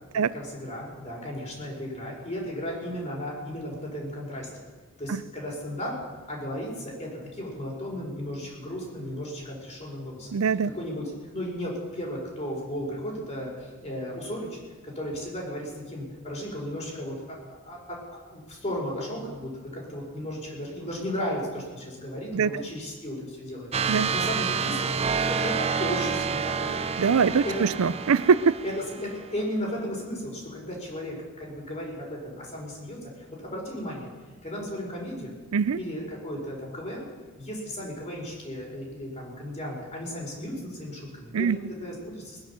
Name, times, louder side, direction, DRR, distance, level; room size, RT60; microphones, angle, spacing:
voice 1, 0.3-4.6 5.0-6.0 6.3-10.4 10.7-11.1 11.3-14.6 14.8-18.0 18.3-25.0 25.3-26.9 27.4-27.6 28.6-28.7 29.0-34.1 34.4-35.4 35.8-37.1 37.4-42.4, equal, 35° left, -2 dB, 5.2 m, -35 dB
voice 2, 10.3-10.7 22.3-22.6 23.9-24.1 27.0-28.6 35.5-35.8 41.3-41.6, right 6 dB, 75° right, 17 dB, 0.5 m, -23 dB
sound 1, 23.7-29.2, right 5 dB, 30° right, 0.6 m, -28 dB
19.5 x 10.0 x 7.2 m, 1.4 s
head